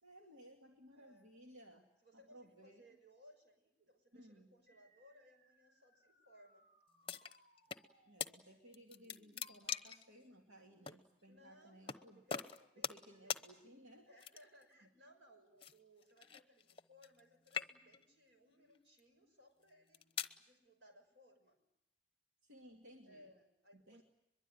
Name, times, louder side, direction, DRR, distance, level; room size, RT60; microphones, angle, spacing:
voice 1, 0.0-2.8 4.1-4.5 8.1-12.2 12.8-14.1 14.8-14.9 22.4-23.3 23.7-24.0, equal, 85° right, 1 dB, 2.5 m, -60 dB
voice 2, 1.0-1.3 2.0-6.7 11.3-13.0 13.2-13.4 14.0-20.0 20.4-21.6 23.0-24.0, equal, 60° right, 5 dB, 6.0 m, -65 dB
sound 1, 4.7-9.7, right 1 dB, 45° right, 7.2 m, -72 dB
sound 2, 7.1-7.8 8.2-8.3 8.7-10.0 10.9-11.0 11.9-12.0 12.3-13.0 13.3-13.4 14.2-14.6 15.6-17.2 17.5-18.0 18.7-19.0 19.7-20.4, left 7 dB, 25° left, 0.9 m, -42 dB
23.0 x 22.5 x 9.3 m, 0.89 s
head